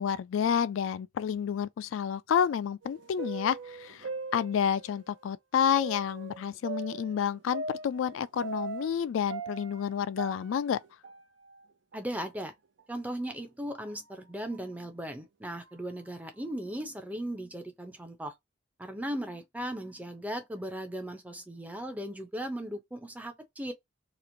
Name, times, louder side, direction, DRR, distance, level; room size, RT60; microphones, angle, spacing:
voice 1, 0.0-10.8, left 8 dB, 80° left, 0.3 m, -29 dB
sound 1, 2.8-5.0 5.7-9.0 9.3-11.7 11.9-12.0 12.8-12.9 13.6-13.9 14.5-14.6 15.4-15.7, right 4 dB, 70° right, 0.5 m, -41 dB
voice 2, 11.9-12.5 12.9-18.3 18.8-23.7, right 1 dB, 10° right, 0.5 m, -37 dB
3.0 x 2.5 x 2.6 m
head